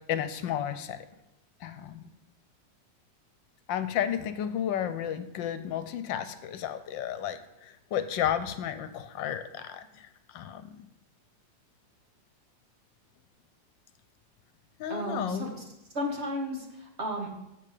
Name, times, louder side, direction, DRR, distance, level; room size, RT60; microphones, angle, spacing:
voice 1, 0.1-1.1 1.6-2.1 3.7-10.8 14.8-15.5, left 10 dB, 80° left, 10 dB, 1.4 m, -32 dB
voice 2, 14.9-15.6 15.9-17.3, equal, 40° right, 1 dB, 1.5 m, -33 dB
8.6 x 7.3 x 4.9 m, 0.89 s
omnidirectional pair, 2.0 m